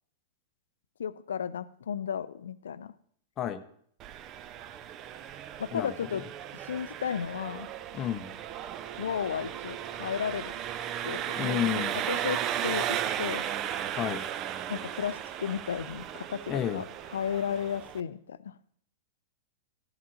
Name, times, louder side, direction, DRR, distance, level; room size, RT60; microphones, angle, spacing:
voice 1, 1.0-2.9 5.6-6.2 6.5-7.7 9.0-10.6 11.0-11.7 12.1-13.4 14.7-16.9 17.1-18.6, left 8 dB, 70° left, 17 dB, 0.4 m, -34 dB
Engine, 4.0-18.0, right 10 dB, 35° right, 0.5 m, -35 dB
voice 2, 7.9-8.3 11.4-12.0 14.0-14.2 16.5-16.8, left 10 dB, 30° left, 9 dB, 0.6 m, -31 dB
13.5 x 11.0 x 2.8 m, 0.63 s
figure-of-eight pair, 100°, 0 cm